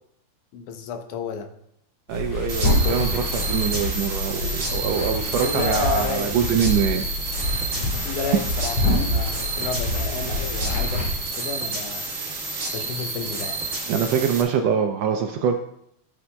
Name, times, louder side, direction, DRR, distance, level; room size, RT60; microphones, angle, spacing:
voice 1, 0.5-1.5 5.2-6.3 8.0-12.1 12.7-13.7, left 5 dB, 85° left, 6 dB, 2.3 m, -31 dB
sound 1, 2.1-11.1, left 1 dB, 65° left, 5.2 m, -26 dB
voice 2, 2.1-7.1 13.9-15.6, right 7 dB, 80° right, 4 dB, 1.5 m, -24 dB
sound 2, 2.5-14.4, right 3 dB, 40° right, 1.1 m, -30 dB
14.0 x 7.0 x 2.2 m, 0.74 s
omnidirectional pair, 3.4 m